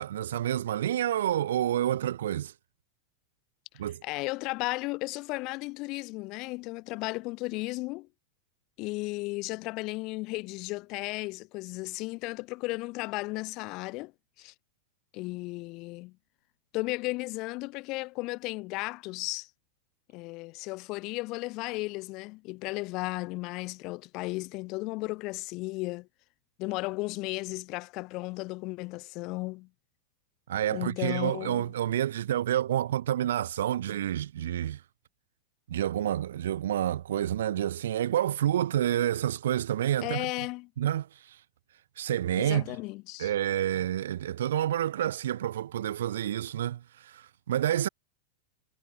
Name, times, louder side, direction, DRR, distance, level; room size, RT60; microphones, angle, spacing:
voice 1, 0.0-2.5 3.8-4.0 30.5-34.8 35.7-40.3 40.8-41.4 42.0-42.6 43.2-47.9, right 11 dB, 60° right, 1.8 m, -29 dB
voice 2, 4.0-8.1 8.8-14.1 14.4-14.5 15.1-16.2 16.7-19.5 20.1-26.1 26.6-29.7 30.7-31.7 40.0-40.7 42.4-43.3, left 23 dB, 40° left, 5.9 m, -35 dB
figure-of-eight pair, 90°, 0 cm